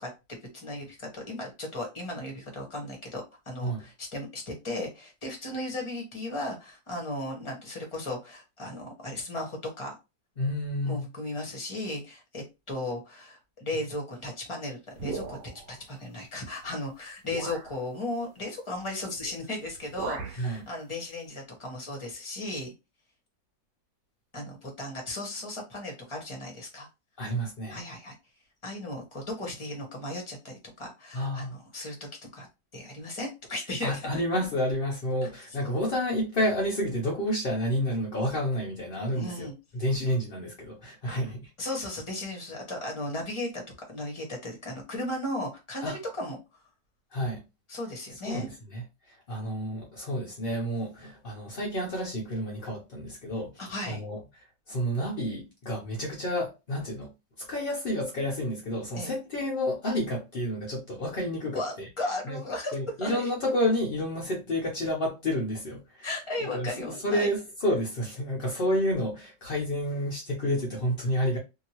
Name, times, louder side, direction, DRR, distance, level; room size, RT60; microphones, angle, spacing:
voice 1, 0.0-9.9 10.8-15.4 15.7-22.7 24.3-26.9 27.7-28.1 28.6-32.5 32.7-34.2 35.2-35.3 39.1-39.5 41.1-41.2 41.6-43.6 43.9-46.4 47.7-48.5 53.6-54.0 59.0-59.1 61.5-63.3 66.0-67.3, left 1 dB, 20° left, 0.9 m, -36 dB
voice 2, 10.4-11.1 20.4-20.6 27.2-27.8 31.1-31.6 33.8-41.5 45.8-46.0 47.1-47.4 48.3-53.5 53.9-54.2 54.7-57.1 57.4-61.9 62.3-62.4 62.7-66.1 66.4-71.4, equal, 65° left, 0.5 m, -30 dB
sound 1, 15.0-15.8 16.6-16.7 17.3-17.7 19.1-19.4 19.7-20.5, right 5 dB, 75° right, 1.1 m, -38 dB
2.8 x 2.7 x 2.9 m
omnidirectional pair, 2.0 m